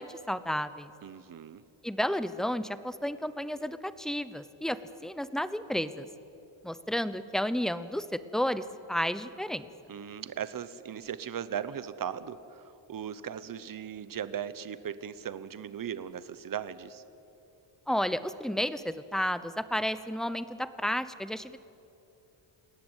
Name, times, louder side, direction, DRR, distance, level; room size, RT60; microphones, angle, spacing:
voice 1, 0.0-0.9 1.8-6.1 6.6-9.7 17.9-21.6, equal, ahead, 13 dB, 0.8 m, -32 dB
voice 2, 1.0-1.6 9.9-17.0, right 8 dB, 45° right, 14 dB, 1.1 m, -38 dB
29.0 x 18.0 x 9.1 m, 2.8 s
wide cardioid pair, 150°, 48 cm